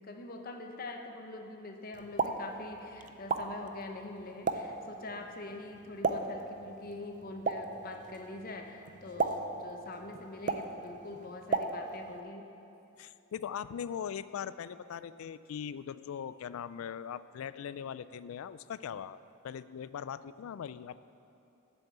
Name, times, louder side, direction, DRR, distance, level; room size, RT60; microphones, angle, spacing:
voice 1, 0.0-12.5, left 2 dB, 45° left, 4 dB, 0.8 m, -44 dB
Explosion, 1.9-12.2, right 4 dB, 40° right, 0.5 m, -37 dB
voice 2, 13.0-21.0, left 8 dB, 90° left, 16 dB, 0.3 m, -40 dB
8.0 x 7.1 x 8.0 m, 2.8 s
head